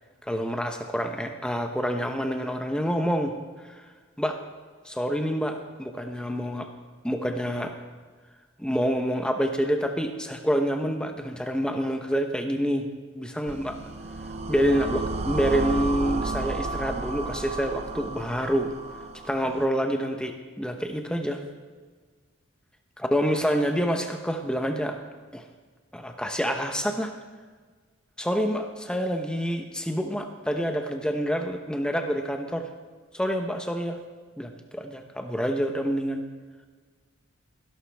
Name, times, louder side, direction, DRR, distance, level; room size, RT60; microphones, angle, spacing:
voice 1, 0.2-3.3 3.7-3.8 4.2-4.4 4.8-6.7 7.0-7.7 8.6-12.9 13.1-13.8 14.5-18.7 19.2-21.4 23.0-25.0 25.3-25.4 25.9-27.1 28.2-32.7 33.1-34.0 34.4-36.2, equal, 5° left, 5 dB, 0.9 m, -27 dB
sound 1, 13.5-19.6, right 3 dB, 30° right, 0.6 m, -32 dB
16.5 x 11.5 x 3.5 m, 1.5 s
head